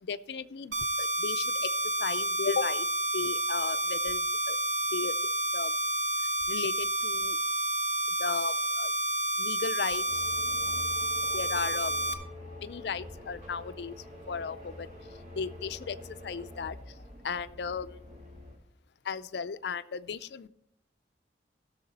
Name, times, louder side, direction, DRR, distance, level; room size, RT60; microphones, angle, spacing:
voice 1, 0.0-1.7 2.0-2.9 3.1-4.6 4.9-5.2 5.5-5.7 6.5-7.4 8.2-8.9 9.4-10.3 11.2-12.1 12.6-14.0 14.3-14.9 15.4-16.0 16.2-16.8 17.2-18.0 19.0-20.5, left 5 dB, 70° left, 13 dB, 0.4 m, -35 dB
sound 1, 0.7-12.1, right 1 dB, 70° right, 1.0 m, -30 dB
sound 2, 10.1-18.6, left 1 dB, 35° right, 3.1 m, -46 dB
16.0 x 6.6 x 4.1 m, 0.77 s
head